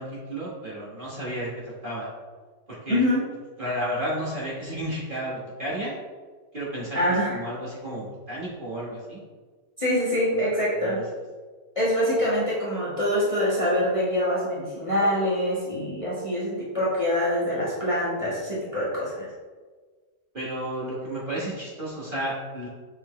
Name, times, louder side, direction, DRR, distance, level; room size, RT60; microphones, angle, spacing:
voice 1, 0.0-2.1 2.8-3.0 3.6-5.9 6.5-9.2 10.8-10.9 20.3-22.7, right 1 dB, 30° right, -8 dB, 1.5 m, -32 dB
voice 2, 2.9-3.2 6.9-7.4 9.8-11.0 11.7-19.3, equal, 20° left, -8 dB, 1.4 m, -25 dB
6.7 x 4.5 x 3.2 m, 1.4 s
omnidirectional pair, 1.9 m